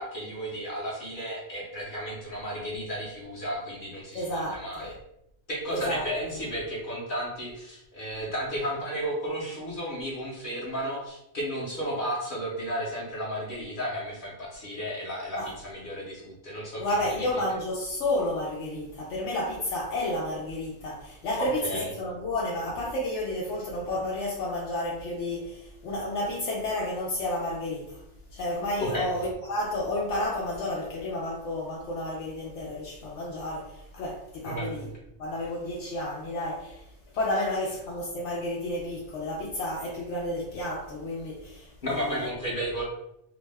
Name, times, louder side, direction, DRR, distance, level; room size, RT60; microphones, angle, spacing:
voice 1, 0.0-4.9 5.5-17.2 21.4-21.9 28.8-29.1 34.4-34.8 41.8-42.8, equal, 50° left, 0.8 m, -33 dB
voice 2, 4.1-4.9 5.7-6.1 15.4-15.5 16.8-28.0 28.3-34.9 35.2-36.8 37.1-42.3, left 1 dB, 80° left, 0.9 m, -31 dB
2.6 x 2.1 x 3.3 m
omnidirectional pair, 1.2 m